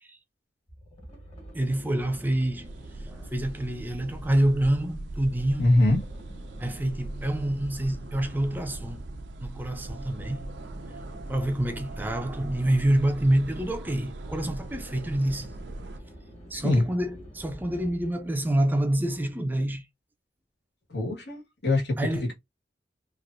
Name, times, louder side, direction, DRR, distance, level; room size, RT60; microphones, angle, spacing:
sound 1, 0.7-18.3, right 1 dB, 35° left, 1.4 m, -47 dB
voice 1, 1.5-2.7 3.0-5.7 6.6-9.0 9.4-10.5 10.9-11.0 11.3-15.5 16.5-19.8 22.0-22.3, right 1 dB, 10° right, 0.4 m, -27 dB
sound 2, 2.6-16.0, right 2 dB, 90° right, 0.5 m, -40 dB
voice 2, 5.6-6.0 16.5-16.8 20.9-22.3, left 2 dB, 80° left, 1.5 m, -23 dB
3.0 x 2.6 x 2.5 m
head